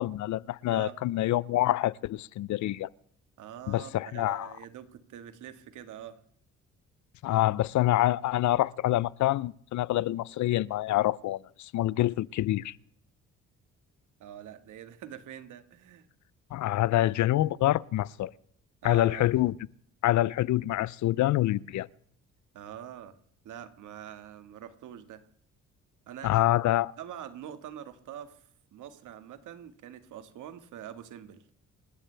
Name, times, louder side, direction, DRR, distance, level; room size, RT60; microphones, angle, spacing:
voice 1, 0.0-2.9 3.7-4.5 7.2-12.7 16.5-18.3 18.8-19.5 20.0-21.9 26.2-26.9, left 15 dB, 70° left, 0.6 m, -26 dB
voice 2, 3.4-6.2 14.2-16.1 18.8-19.3 22.5-23.1 23.4-25.2 26.1-26.4 27.0-31.4, right 10 dB, 80° right, 1.8 m, -44 dB
28.5 x 13.5 x 3.4 m
cardioid pair, 90°, 30 cm